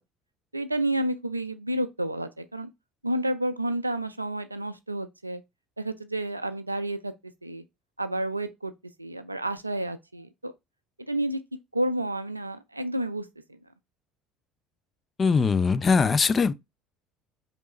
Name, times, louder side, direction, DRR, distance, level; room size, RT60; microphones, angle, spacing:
voice 1, 0.5-2.7 3.0-5.4 5.8-7.1 7.4-7.6 8.0-8.7 9.0-10.5 11.1-11.4 11.7-13.3, right 1 dB, 90° right, 0.3 m, -30 dB
voice 2, 15.2-16.5, left 5 dB, 30° left, 0.4 m, -21 dB
4.2 x 3.2 x 3.0 m
figure-of-eight pair, 60°, 0 cm